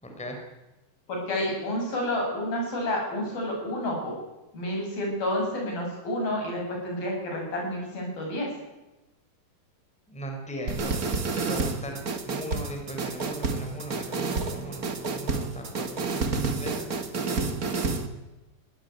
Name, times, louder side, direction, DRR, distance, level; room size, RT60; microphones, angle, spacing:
voice 1, 0.0-0.4 10.1-11.0 11.3-17.5, right 1 dB, ahead, 3 dB, 4.0 m, -38 dB
voice 2, 1.1-4.2 4.5-8.5, left 1 dB, 70° left, 0 dB, 9.5 m, -30 dB
sound 1, 10.7-18.1, right 4 dB, 40° right, 1.3 m, -29 dB
22.0 x 17.0 x 9.6 m, 1.0 s
omnidirectional pair, 4.3 m